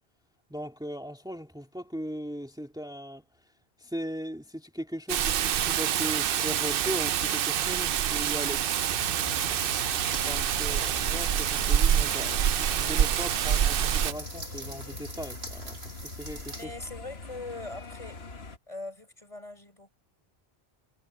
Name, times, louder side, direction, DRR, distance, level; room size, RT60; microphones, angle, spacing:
voice 1, 0.5-3.2 3.8-8.6 10.2-16.7, equal, 5° right, 2.9 m, -38 dB
Rain, 5.1-14.1, right 9 dB, 65° right, 0.8 m, -26 dB
sound 1, 8.9-18.6, left 3 dB, 75° left, 1.8 m, -42 dB
sound 2, 9.2-16.7, right 1 dB, 80° right, 7.1 m, -43 dB
voice 2, 16.5-18.2 18.7-19.9, left 2 dB, 30° left, 4.8 m, -41 dB
omnidirectional pair, 1.1 m